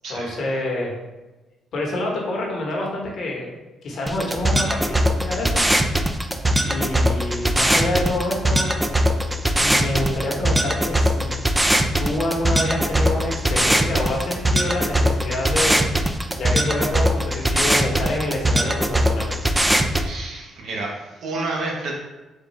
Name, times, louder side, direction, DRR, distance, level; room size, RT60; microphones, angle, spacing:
voice 1, 0.1-0.9 1.7-5.6 6.6-8.7 9.5-11.3 12.0-15.8 16.4-19.3, left 1 dB, 60° left, -1 dB, 1.0 m, -27 dB
sound 1, 4.1-20.1, right 1 dB, 10° right, 0.3 m, -21 dB
voice 2, 20.0-21.9, right 2 dB, 65° right, -1 dB, 1.0 m, -30 dB
3.6 x 2.4 x 4.2 m, 1.1 s
cardioid pair, 85°, 0 cm